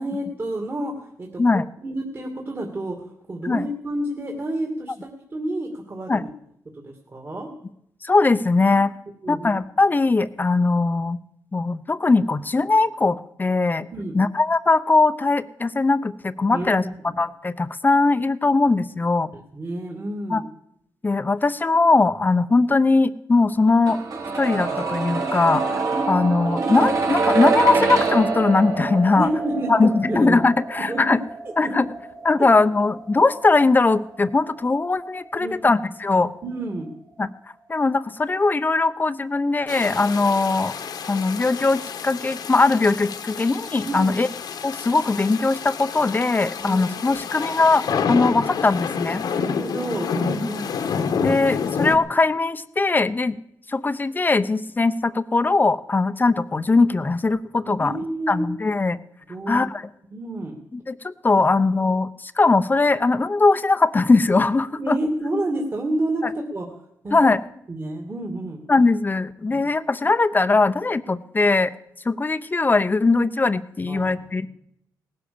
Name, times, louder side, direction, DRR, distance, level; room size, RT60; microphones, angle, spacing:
voice 1, 0.0-1.3 1.8-6.3 6.7-7.5 9.2-9.5 13.9-14.2 16.5-16.7 17.1-17.2 19.3-20.4 29.2-30.4 30.9-31.0 31.6-31.7 35.4-35.7 36.4-36.9 43.8-44.1 46.6-46.9 47.1-47.2 49.4-50.6 57.8-58.5 59.3-59.7 60.1-60.5 64.8-66.7 67.0-67.3 67.7-68.6 69.5-69.6 73.9-74.5, right 1 dB, 35° right, 2 dB, 2.4 m, -29 dB
voice 2, 8.0-8.9 9.3-11.2 11.5-13.9 14.1-19.3 20.3-20.4 21.0-24.0 24.4-25.6 26.1-29.3 29.7-31.2 31.6-31.9 32.2-36.3 37.2-37.3 37.7-40.7 41.1-44.3 44.6-49.2 51.2-53.4 53.7-57.9 58.3-59.0 59.5-59.8 60.9-65.0 67.1-67.4 68.7-71.7 72.0-74.5, left 3 dB, 25° left, 13 dB, 0.8 m, -20 dB
sound 1, 23.9-35.7 36.0-36.1, right 4 dB, 55° right, 2.8 m, -26 dB
sound 2, 39.7-52.0, left 6 dB, 75° left, 1.5 m, -29 dB
18.5 x 11.0 x 6.9 m, 0.77 s
cardioid pair, 90°, 7 cm